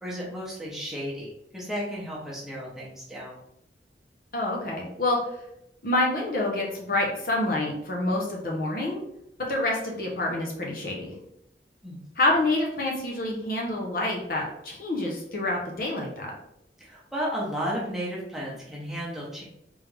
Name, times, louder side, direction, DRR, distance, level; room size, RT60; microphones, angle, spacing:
voice 1, 0.0-3.4 11.8-12.0 16.8-19.4, equal, ahead, -6 dB, 1.0 m, -33 dB
voice 2, 4.3-5.2 5.8-9.0 9.5-11.1 12.2-16.3, left 2 dB, 50° left, -2 dB, 0.9 m, -27 dB
3.6 x 3.3 x 3.4 m, 0.81 s
head